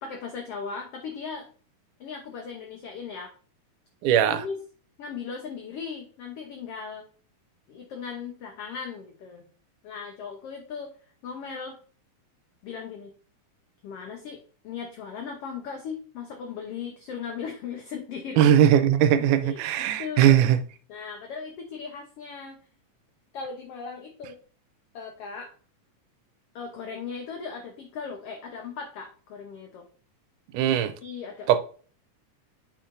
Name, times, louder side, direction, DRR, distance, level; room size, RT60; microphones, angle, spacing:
voice 1, 0.0-1.5 2.0-3.3 4.2-4.6 5.0-7.0 7.7-9.5 9.8-10.9 11.2-11.8 12.6-13.1 13.8-18.6 19.1-20.5 20.9-22.6 23.3-24.4 24.9-25.5 26.5-29.9 31.0-31.5, left 6 dB, 70° left, 1.5 m, -38 dB
voice 2, 4.0-4.4 18.4-20.6 30.5-30.9 31.5-31.6, right 10 dB, 85° right, 2.1 m, -19 dB
8.4 x 5.8 x 2.6 m
omnidirectional pair, 3.7 m